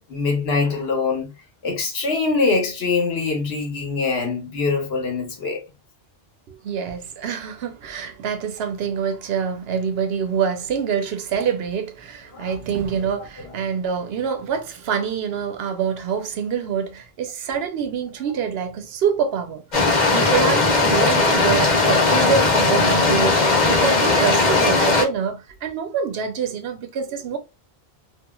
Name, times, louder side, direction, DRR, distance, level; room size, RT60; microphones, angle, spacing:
voice 1, 0.1-1.3 1.6-5.6 12.3-12.5, left 4 dB, 75° left, 1.1 m, -23 dB
voice 2, 6.5-19.6 20.1-27.4, right 6 dB, 75° right, 0.8 m, -26 dB
sound 1, 19.7-25.0, left 3 dB, 50° left, 0.9 m, -18 dB
2.9 x 2.4 x 2.2 m
omnidirectional pair, 1.0 m